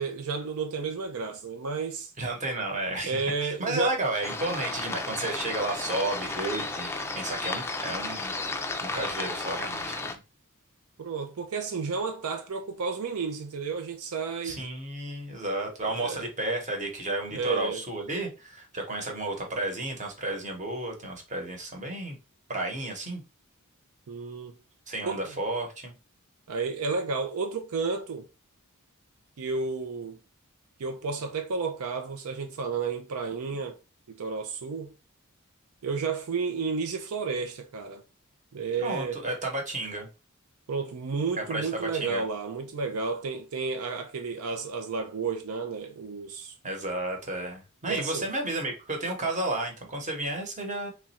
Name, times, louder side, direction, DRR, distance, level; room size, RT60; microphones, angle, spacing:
voice 1, 0.0-2.1 3.1-4.0 11.0-14.6 15.8-16.2 17.3-17.8 24.1-24.6 25.0-25.2 26.5-28.2 29.4-30.2 30.8-33.8 34.2-34.9 35.8-38.0 38.5-39.2 40.7-46.5 47.8-48.3, right 4 dB, 80° right, 0.5 m, -32 dB
voice 2, 2.2-10.1 14.4-22.2 22.5-23.2 24.9-25.9 38.8-40.1 41.4-42.2 46.6-50.9, right 2 dB, 35° right, 1.0 m, -32 dB
sound 1, 4.2-10.2, left 3 dB, 10° left, 0.4 m, -33 dB
3.1 x 2.4 x 4.2 m
head